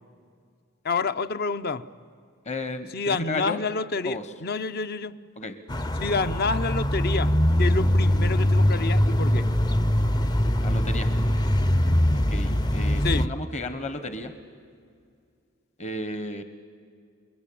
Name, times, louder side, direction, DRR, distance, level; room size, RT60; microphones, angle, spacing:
voice 1, 0.8-1.8 2.9-5.1 6.0-7.3 7.6-9.5 13.0-13.3, left 4 dB, 55° left, 12 dB, 0.8 m, -28 dB
voice 2, 2.4-3.6 4.0-4.3 5.4-5.6 10.6-11.1 12.1-14.3 15.8-16.4, left 2 dB, 35° left, 9 dB, 1.3 m, -33 dB
sound 1, 5.7-13.3, equal, 20° left, 0.6 m, -22 dB
30.0 x 21.5 x 8.6 m, 2.2 s
head